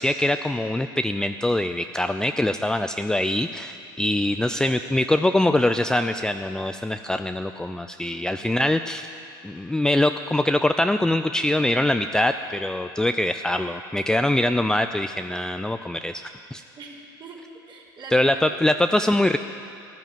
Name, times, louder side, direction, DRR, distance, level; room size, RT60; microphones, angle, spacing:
voice 1, 0.0-9.1 9.4-16.2 16.5-16.6 18.1-19.4, left 1 dB, 5° left, 8 dB, 0.4 m, -23 dB
voice 2, 4.5-4.8 8.4-8.6 16.8-18.6 18.9-19.1, right 3 dB, 40° right, -3 dB, 3.6 m, -43 dB
13.0 x 11.5 x 7.5 m, 2.5 s
hypercardioid pair, 75°, 12 cm